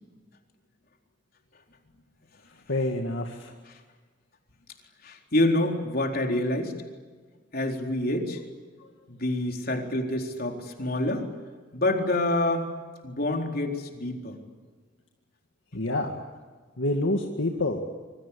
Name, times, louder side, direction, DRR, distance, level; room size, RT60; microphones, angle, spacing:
voice 1, 2.7-3.6 15.7-16.2 16.8-17.8, left 2 dB, 75° left, 2 dB, 2.2 m, -27 dB
voice 2, 5.0-6.7 7.5-8.4 9.1-11.3 11.7-12.7 13.0-14.4, left 1 dB, 50° left, 3 dB, 4.1 m, -27 dB
26.5 x 24.0 x 8.5 m, 1.4 s
head